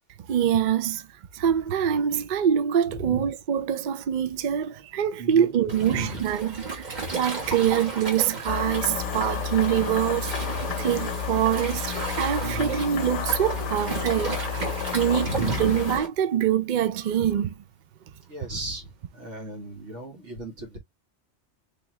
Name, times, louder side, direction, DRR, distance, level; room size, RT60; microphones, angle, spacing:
voice 1, 0.3-1.0 1.3-17.5, right 9 dB, 55° right, 0.5 m, -25 dB
voice 2, 2.9-3.3 5.2-5.5 5.8-6.3 12.4-12.9 15.2-15.8 18.3-20.8, right 1 dB, 80° right, 1.8 m, -35 dB
Waves surf, 5.7-16.1, right 3 dB, 40° right, 1.2 m, -34 dB
sound 1, 8.5-16.0, left 7 dB, 80° left, 0.9 m, -31 dB
3.6 x 3.2 x 3.1 m
omnidirectional pair, 1.2 m